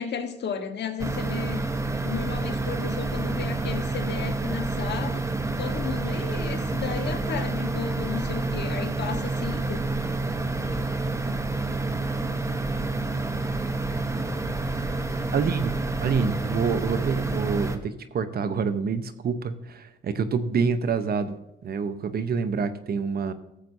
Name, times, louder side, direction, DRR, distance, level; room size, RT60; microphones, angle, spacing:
voice 1, 0.0-1.6 2.0-5.2 5.6-9.8, left 7 dB, 60° left, 6 dB, 1.4 m, -33 dB
sound 1, 1.0-17.8, right 2 dB, 15° right, 0.9 m, -28 dB
voice 2, 15.3-15.7 16.0-23.3, right 5 dB, 50° right, 11 dB, 0.9 m, -27 dB
15.0 x 7.5 x 2.7 m, 0.91 s
cardioid pair, 90°, 20 cm